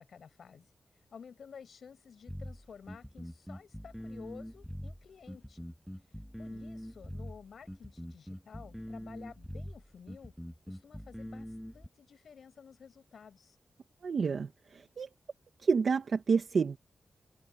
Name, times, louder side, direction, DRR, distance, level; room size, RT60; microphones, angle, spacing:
voice 1, 0.0-5.7 6.0-10.3 10.7-13.6, left 6 dB, 85° left, 7.9 m, -53 dB
sound 1, 2.3-11.9, equal, 5° left, 1.7 m, -43 dB
voice 2, 14.0-15.1 15.6-16.8, right 5 dB, 70° right, 1.5 m, -29 dB
wide cardioid pair, 85°, 0 cm